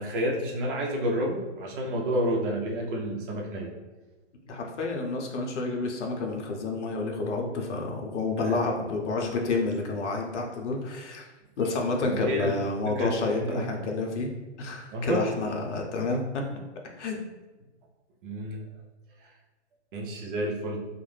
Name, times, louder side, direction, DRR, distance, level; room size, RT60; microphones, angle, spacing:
voice 1, 0.0-3.7 8.4-8.6 12.0-14.0 14.9-15.2 18.2-18.6 19.9-20.8, equal, 45° right, -1 dB, 0.7 m, -30 dB
voice 2, 4.5-11.3 11.6-14.3 14.6-16.4 17.0-17.3, left 3 dB, 80° left, 2 dB, 0.7 m, -29 dB
2.4 x 2.1 x 3.2 m, 1.2 s
hypercardioid pair, 150°, 35 cm